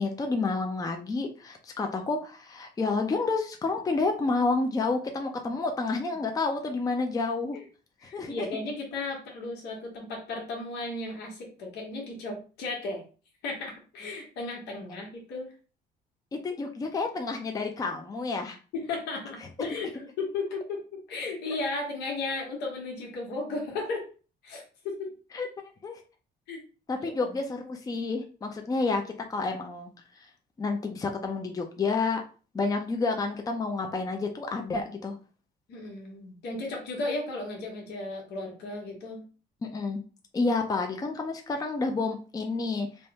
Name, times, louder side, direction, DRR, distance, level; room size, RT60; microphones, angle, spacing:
voice 1, 0.0-7.6 8.1-8.5 16.3-18.6 25.3-25.5 25.8-26.0 26.9-29.0 29.3-29.9 30.6-32.2 32.5-35.2 39.6-40.0 40.3-42.9, left 3 dB, 20° left, 4 dB, 0.6 m, -29 dB
voice 2, 8.0-13.0 13.4-15.5 18.7-24.1 24.4-25.1 26.5-26.6 27.0-27.3 35.7-39.2, left 3 dB, 80° left, -1 dB, 1.3 m, -35 dB
3.4 x 2.2 x 4.0 m, 0.37 s
cardioid pair, 110°, 17 cm